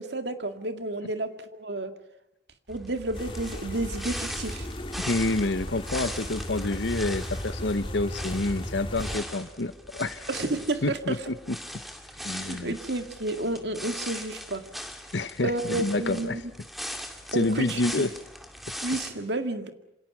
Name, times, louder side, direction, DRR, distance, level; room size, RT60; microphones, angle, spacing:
voice 1, 0.0-1.9 2.7-4.7 10.3-11.2 12.5-14.6 15.4-16.4 17.3-18.1 18.8-19.7, right 2 dB, 65° right, 7 dB, 2.1 m, -31 dB
sound 1, 2.7-19.1, equal, ahead, 2.2 m, -40 dB
sound 2, 3.1-9.2, left 1 dB, 30° left, 2.5 m, -36 dB
voice 2, 5.0-10.3 10.8-11.6 12.2-12.7 15.1-16.4 17.3-18.1, left 2 dB, 75° left, 12 dB, 1.0 m, -28 dB
27.5 x 27.0 x 6.1 m, 0.87 s
head